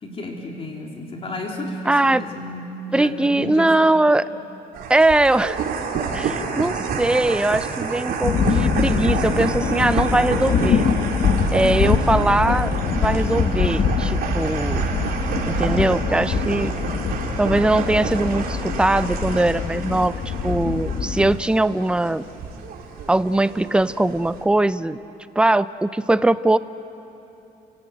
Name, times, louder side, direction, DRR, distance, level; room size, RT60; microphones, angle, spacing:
voice 1, 0.0-4.0, left 1 dB, 35° left, 0 dB, 3.2 m, -32 dB
voice 2, 1.9-2.2 2.9-4.2 4.9-5.6 6.1-10.9 11.5-14.9 15.5-16.7 17.4-20.2 20.4-22.3 23.1-25.0 25.4-26.6, right 2 dB, 5° right, 14 dB, 0.6 m, -20 dB
sound 1, 4.7-24.4, right 5 dB, 65° right, 3.7 m, -29 dB
sound 2, 8.2-21.4, left 6 dB, 55° left, 1.5 m, -23 dB
30.0 x 17.5 x 9.1 m, 3.0 s
cardioid pair, 110°, 17 cm